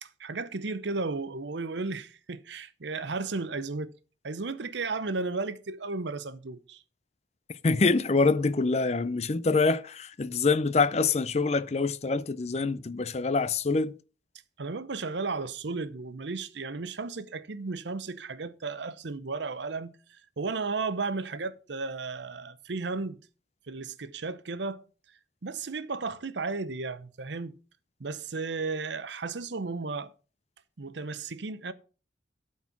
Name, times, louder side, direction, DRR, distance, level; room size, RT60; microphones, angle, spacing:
voice 1, 0.0-3.9 4.2-6.8 14.6-23.2 23.7-24.9 25.4-27.5 28.0-30.1 30.8-31.7, right 3 dB, 70° right, 0.7 m, -34 dB
voice 2, 7.6-13.9, left 4 dB, 35° left, 0.5 m, -25 dB
12.0 x 4.4 x 5.8 m
head